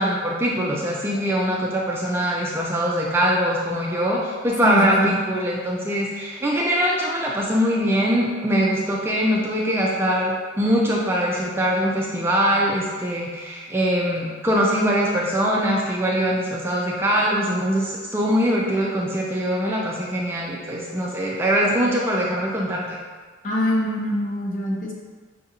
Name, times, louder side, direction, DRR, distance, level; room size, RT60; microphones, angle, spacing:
voice 1, 0.0-23.0, equal, 10° right, -4 dB, 0.3 m, -22 dB
voice 2, 4.6-5.1 23.4-24.9, left 1 dB, 40° left, -3 dB, 0.7 m, -24 dB
5.3 x 2.5 x 2.8 m, 1.5 s
head